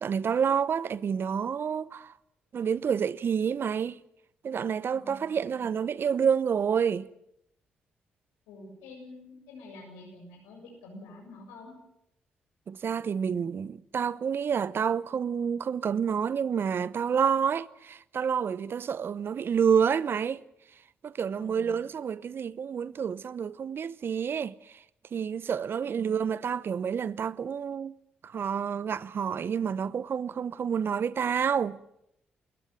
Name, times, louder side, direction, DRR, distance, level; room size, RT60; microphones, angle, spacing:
voice 1, 0.0-2.1 2.5-4.0 4.4-7.1 12.7-20.4 21.0-24.5 25.1-27.9 28.2-31.8, right 7 dB, 55° right, 0.8 m, -28 dB
voice 2, 4.9-5.7 8.5-11.7 21.4-21.8 25.8-26.3, left 2 dB, 85° left, 7.2 m, -48 dB
29.0 x 14.5 x 9.2 m
hypercardioid pair, 45°, 4 cm